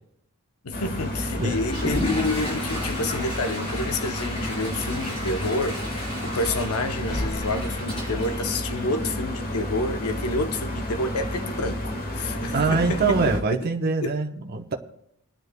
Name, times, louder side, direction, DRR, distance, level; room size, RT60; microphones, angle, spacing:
voice 1, 0.6-5.8 6.2-13.2 13.6-13.7 14.0-14.2, left 2 dB, 70° left, 0.8 m, -29 dB
sound 1, 0.7-13.4, left 1 dB, 40° left, 1.3 m, -31 dB
Water / Toilet flush, 1.6-9.3, left 1 dB, 25° left, 3.8 m, -34 dB
voice 2, 12.5-14.8, right 4 dB, 45° right, 0.8 m, -24 dB
28.0 x 9.5 x 2.2 m
head